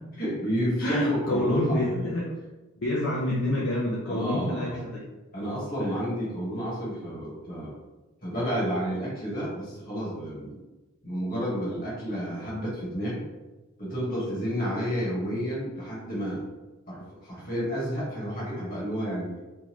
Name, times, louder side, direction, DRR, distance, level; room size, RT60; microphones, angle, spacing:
voice 1, 0.2-2.1 4.1-4.8 5.3-7.7 8.2-10.6 11.0-13.2 13.8-16.5 16.9-19.3, equal, 40° left, -7 dB, 1.4 m, -31 dB
voice 2, 0.8-2.3 2.8-5.0 5.8-5.9, left 1 dB, 60° left, -6 dB, 0.6 m, -27 dB
3.6 x 2.5 x 3.0 m, 1.1 s
head